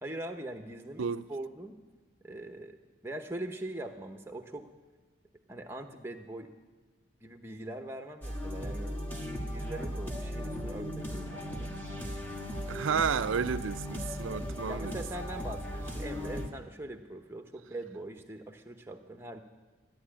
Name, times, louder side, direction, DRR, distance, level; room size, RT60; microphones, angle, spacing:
voice 1, 0.0-1.8 2.2-2.8 3.0-4.7 5.5-6.5 7.2-8.9 9.2-11.7 14.7-19.4, right 1 dB, 10° right, 0.9 m, -42 dB
sound 1, 8.2-16.5, equal, 10° left, 1.6 m, -37 dB
voice 2, 12.7-15.0, right 6 dB, 75° right, 0.4 m, -31 dB
14.0 x 10.5 x 8.8 m
head